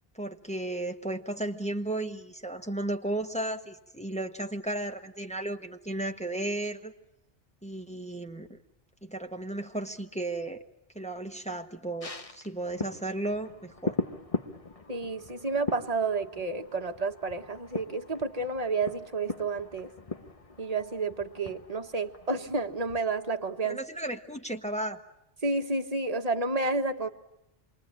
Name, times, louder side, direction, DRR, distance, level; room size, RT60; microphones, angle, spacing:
voice 1, 0.1-6.9 7.6-8.6 9.0-10.6 10.9-14.0 23.6-25.0, right 1 dB, 5° left, 4 dB, 1.4 m, -34 dB
sound 1, 12.0-23.7 24.0-24.1, left 2 dB, 35° left, 1.3 m, -40 dB
voice 2, 14.9-19.9 20.6-23.8 25.4-27.1, right 3 dB, 40° right, 6 dB, 1.5 m, -30 dB
27.5 x 23.0 x 8.8 m, 0.86 s
omnidirectional pair, 1.0 m